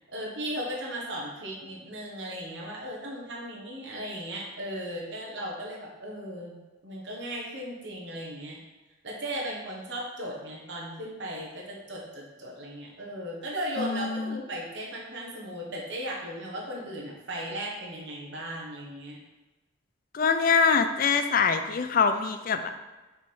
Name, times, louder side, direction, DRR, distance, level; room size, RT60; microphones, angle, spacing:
voice 1, 0.1-8.6 9.0-19.2, equal, 65° right, -4 dB, 1.4 m, -36 dB
voice 2, 13.8-14.4 20.1-22.7, left 5 dB, 45° left, 8 dB, 0.4 m, -24 dB
6.0 x 3.5 x 4.5 m, 1.1 s
head